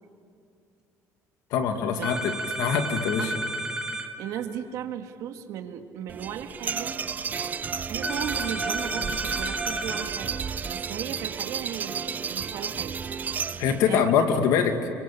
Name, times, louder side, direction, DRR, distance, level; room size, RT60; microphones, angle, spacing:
voice 1, 1.5-3.3 13.6-14.9, left 7 dB, 80° left, 6 dB, 2.4 m, -24 dB
sound 1, 2.0-4.1 8.0-10.1, right 1 dB, 10° right, 2.7 m, -32 dB
voice 2, 4.2-7.0 7.9-13.0 13.8-14.1, right 9 dB, 65° right, 5 dB, 2.2 m, -36 dB
sound 2, 6.1-13.9, right 6 dB, 30° right, 0.6 m, -32 dB
29.0 x 23.5 x 8.6 m, 2.6 s
cardioid pair, 150°, 6 cm